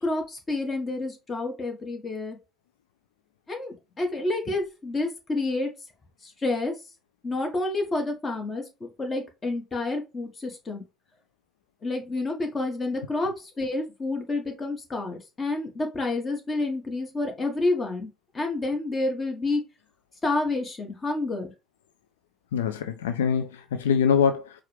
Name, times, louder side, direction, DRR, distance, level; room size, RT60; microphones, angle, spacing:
voice 1, 0.0-2.4 3.5-5.7 6.2-6.7 7.2-10.8 11.8-18.1 18.3-19.6 20.2-21.5, left 2 dB, 30° left, 1.5 m, -29 dB
voice 2, 22.5-24.5, left 7 dB, 85° left, 0.3 m, -24 dB
4.6 x 2.4 x 3.3 m
hypercardioid pair, 60°, 0 cm